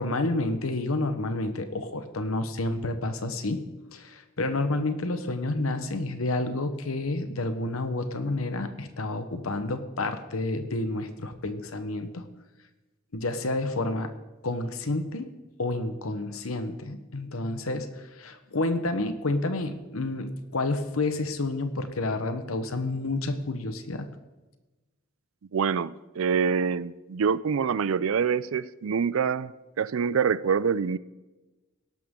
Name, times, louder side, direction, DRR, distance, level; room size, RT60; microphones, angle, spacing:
voice 1, 0.0-3.6 3.9-12.2 13.1-14.1 14.4-15.3 15.6-24.1, left 2 dB, 90° left, 1.1 m, -29 dB
voice 2, 25.5-31.0, right 6 dB, 75° right, 0.4 m, -26 dB
17.5 x 12.0 x 3.8 m
head